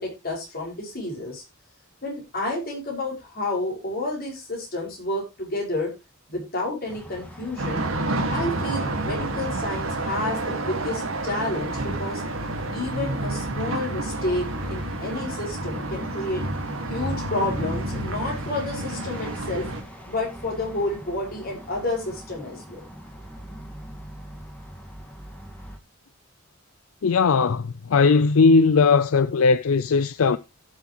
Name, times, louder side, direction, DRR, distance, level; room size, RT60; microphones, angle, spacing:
voice 1, 0.0-1.4 2.0-5.9 6.3-7.9 8.3-12.2 12.7-16.4 16.9-19.6 20.1-22.8, left 2 dB, 45° left, 5.8 m, -30 dB
sound 1, 6.9-25.8, equal, 5° left, 2.1 m, -42 dB
sound 2, 7.6-19.8, right 2 dB, 70° right, 2.0 m, -29 dB
voice 2, 27.0-30.4, left 4 dB, 75° left, 0.5 m, -18 dB
16.5 x 7.2 x 3.0 m
head